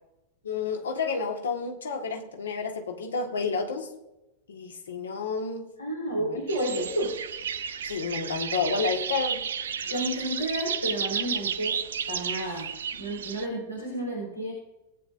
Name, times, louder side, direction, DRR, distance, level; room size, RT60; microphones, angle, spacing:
voice 1, 0.4-3.9 4.5-5.7 6.2-6.4 7.9-9.4 12.4-12.6, left 5 dB, 65° left, 3 dB, 1.6 m, -30 dB
voice 2, 5.8-7.2 9.8-11.8 12.1-14.5, right 1 dB, 85° left, -4 dB, 3.8 m, -31 dB
sound 1, 6.5-13.5, right 7 dB, 65° right, 0.7 m, -32 dB
18.5 x 9.1 x 2.6 m, 0.96 s
figure-of-eight pair, 90°, 0 cm